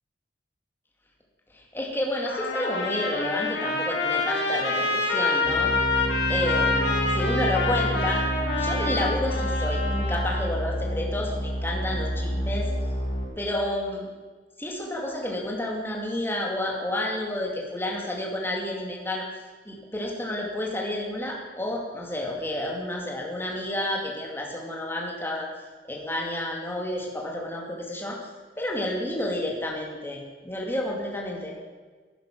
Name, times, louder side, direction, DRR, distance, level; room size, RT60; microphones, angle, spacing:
voice 1, 1.5-5.7 6.3-8.2 8.6-12.7 13.4-14.1 14.6-19.3 19.7-25.5 25.8-28.2 28.6-31.6, left 1 dB, 15° left, -1 dB, 2.4 m, -30 dB
Trumpet, 2.2-10.4, left 3 dB, 70° left, 2.2 m, -27 dB
sound 1, 5.4-13.3, equal, 30° left, 2.7 m, -29 dB
12.0 x 10.0 x 6.0 m, 1.4 s
head